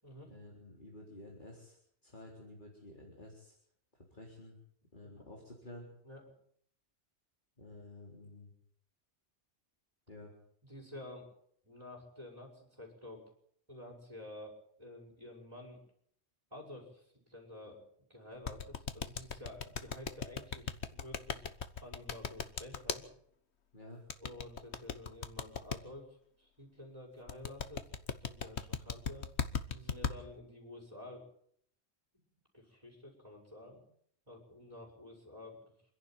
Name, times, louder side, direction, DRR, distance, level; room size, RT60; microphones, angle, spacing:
voice 1, 0.3-1.8 2.0-3.6 3.9-4.6 4.9-5.9 7.6-8.5 10.1-10.3 23.7-24.0, left 1 dB, 45° left, -1 dB, 4.2 m, -51 dB
voice 2, 10.6-11.3 11.6-13.2 13.7-15.8 16.5-17.8 18.1-21.4 21.8-23.1 24.2-27.9 28.2-29.3 29.7-31.3 32.1-32.3 32.5-33.8 34.3-35.6, left 1 dB, 25° right, 1 dB, 5.4 m, -50 dB
sound 1, 18.5-23.0 24.1-25.8 27.3-30.1, left 6 dB, 80° left, 1.5 m, -37 dB
27.5 x 11.0 x 9.0 m, 0.65 s
omnidirectional pair, 1.1 m